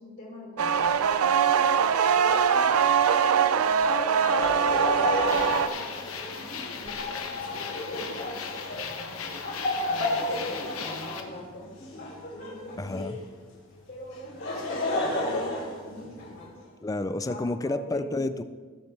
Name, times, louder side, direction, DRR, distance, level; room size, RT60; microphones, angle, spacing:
voice 1, 0.0-1.6 2.1-4.4 4.8-9.4 9.9-11.7 12.3-13.0 13.9-16.6 17.3-18.2, left 1 dB, 45° left, -3 dB, 3.4 m, -44 dB
sound 1, 0.6-5.7, right 7 dB, 85° right, 0.5 m, -22 dB
Laughter, 4.2-13.3 14.1-16.5, left 1 dB, 60° left, 3.6 m, -32 dB
sound 2, 5.3-11.2, left 5 dB, 80° left, 1.1 m, -37 dB
voice 2, 12.8-13.2 16.8-18.4, left 2 dB, 15° left, 12 dB, 0.4 m, -30 dB
18.5 x 7.3 x 3.3 m, 1.4 s
head